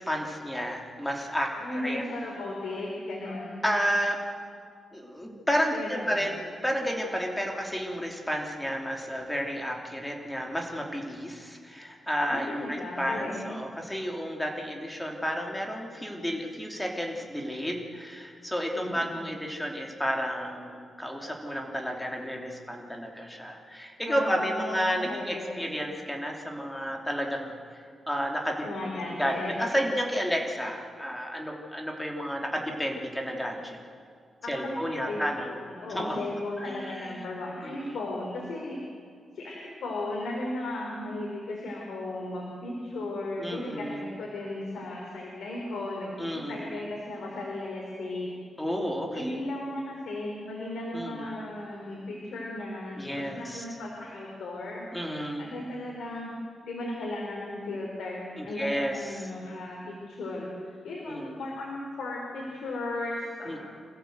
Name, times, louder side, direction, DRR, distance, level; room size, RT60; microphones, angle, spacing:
voice 1, 0.0-2.0 3.6-4.2 4.9-27.6 28.1-28.9 29.2-33.8 34.5-35.5 35.9-36.2 36.6-37.3 37.6-38.0 43.4-44.1 46.2-46.5 48.6-49.4 50.9-51.4 53.0-53.6 54.9-55.4 58.4-59.2 61.1-61.3 63.5-63.6, equal, 5° left, 1 dB, 3.0 m, -31 dB
voice 2, 1.5-3.6 5.7-6.2 12.3-13.5 18.7-19.2 24.0-25.6 28.6-29.6 34.4-38.8 39.3-48.3 49.1-54.9 55.4-56.3 56.6-63.6, left 2 dB, 90° left, -2 dB, 4.2 m, -36 dB
26.0 x 15.5 x 8.0 m, 2.1 s
wide cardioid pair, 130°, 0 cm